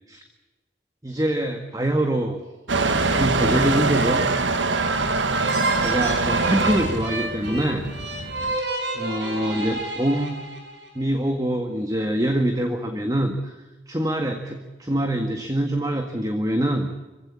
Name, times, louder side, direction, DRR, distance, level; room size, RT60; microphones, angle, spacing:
voice 1, 1.0-2.4 3.1-4.2 5.8-7.9 8.9-10.5 10.9-13.5 13.9-16.9, right 1 dB, 20° right, 4 dB, 1.8 m, -24 dB
Motor vehicle (road) / Engine starting / Accelerating revving vroom, 2.7-8.6, right 3 dB, 85° right, 1.8 m, -23 dB
sound 1, 5.4-10.9, right 2 dB, 65° right, 5.9 m, -30 dB
25.5 x 16.5 x 8.5 m, 1.2 s
head